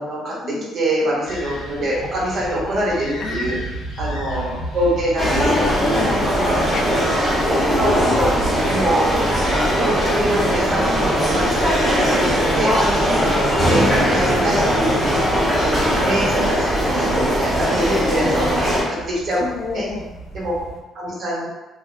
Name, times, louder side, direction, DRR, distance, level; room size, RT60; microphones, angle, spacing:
voice 1, 0.0-3.6 4.0-5.7 7.8-8.3 8.6-9.3 9.7-12.3 12.5-13.2 13.7-15.7 16.0-19.4 19.7-19.9 20.3-20.5 20.9-21.5, right 1 dB, 55° right, -6 dB, 1.0 m, -24 dB
sound 1, 1.2-20.8, right 1 dB, 80° left, 0.7 m, -34 dB
voice 2, 3.2-3.7 5.2-6.9 7.5-8.3 12.2-12.4 14.8-15.0 18.0-18.4 19.4-20.0, left 4 dB, 50° left, 1 dB, 0.4 m, -28 dB
sound 2, 5.2-18.8, equal, 20° right, 1.1 m, -19 dB
2.3 x 2.1 x 2.6 m, 1.1 s
supercardioid pair, 80°, 0 cm